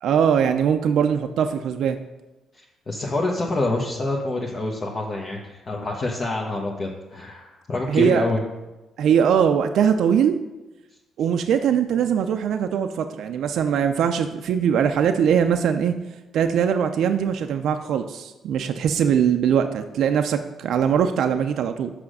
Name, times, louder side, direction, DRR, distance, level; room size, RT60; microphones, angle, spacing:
voice 1, 0.0-2.0 7.9-8.2 9.0-10.4 11.2-15.9 16.3-21.9, right 8 dB, 75° right, 7 dB, 0.4 m, -21 dB
voice 2, 2.5-8.4, left 2 dB, 40° left, -1 dB, 1.0 m, -27 dB
6.0 x 5.0 x 6.5 m, 1.0 s
cardioid pair, 90°, 0 cm